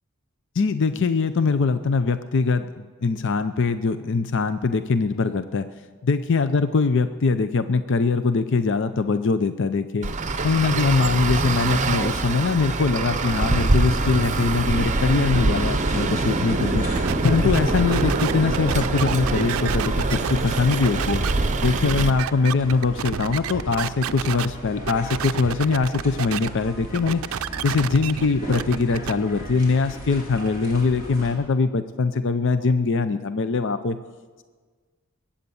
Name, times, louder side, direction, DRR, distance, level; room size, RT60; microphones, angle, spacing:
voice 1, 0.6-5.7 6.0-10.1 10.4-16.9 17.2-21.2 21.6-27.2 27.6-34.0, left 4 dB, 60° left, 11 dB, 0.5 m, -22 dB
Traffic noise roadway noise, 10.0-22.1, right 3 dB, 35° right, 0.7 m, -24 dB
sound 1, 14.8-31.3, equal, 40° left, 3.6 m, -37 dB
sound 2, 16.9-24.5 24.8-26.5 26.8-29.1, right 8 dB, 75° right, 0.4 m, -30 dB
21.5 x 8.7 x 7.0 m, 1.5 s
head